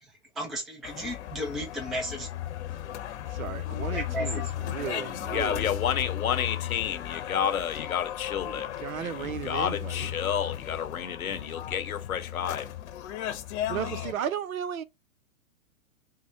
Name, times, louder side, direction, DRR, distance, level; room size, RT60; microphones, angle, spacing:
voice 1, 0.0-2.3 3.6-5.7, equal, ahead, 0.4 m, -36 dB
sound 1, 0.8-14.1, left 12 dB, 55° left, 0.9 m, -35 dB
voice 2, 3.3-4.4 4.7-5.7 8.5-10.1 13.7-14.8, right 9 dB, 75° right, 0.8 m, -35 dB
voice 3, 5.1-8.7 9.0-12.7 13.7-14.1, left 8 dB, 80° left, 1.0 m, -31 dB
4.7 x 2.1 x 3.9 m
hypercardioid pair, 120°, 42 cm